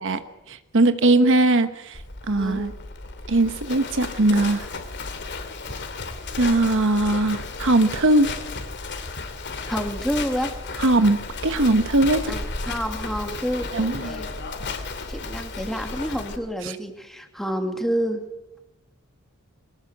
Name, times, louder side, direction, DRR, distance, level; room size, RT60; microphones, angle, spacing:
voice 1, 0.5-2.7 3.3-4.7 6.4-8.3 10.8-12.3 13.7-14.1 16.6-16.8, right 2 dB, 60° right, 10 dB, 1.1 m, -20 dB
Livestock farm animals working animals, 1.9-16.4, left 3 dB, 50° left, 2.6 m, -34 dB
voice 2, 9.7-10.5 12.3-14.3 15.1-18.2, equal, ahead, 5 dB, 2.4 m, -28 dB
23.0 x 19.5 x 8.0 m, 0.95 s
head